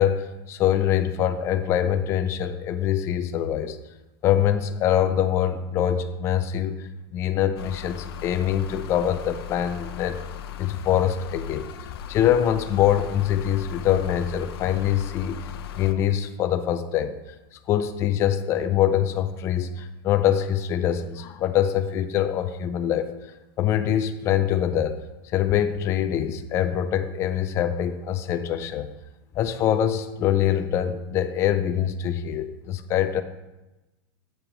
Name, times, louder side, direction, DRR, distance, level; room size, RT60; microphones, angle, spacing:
voice 1, 0.0-3.8 4.2-10.2 10.6-11.7 12.1-15.4 15.8-17.2 17.7-23.1 23.6-28.9 29.4-33.2, left 10 dB, 20° left, 8 dB, 0.3 m, -24 dB
sound 1, 7.6-15.9, left 10 dB, 70° left, 0.7 m, -38 dB
7.6 x 5.0 x 5.9 m, 1.0 s
supercardioid pair, 165°, 13 cm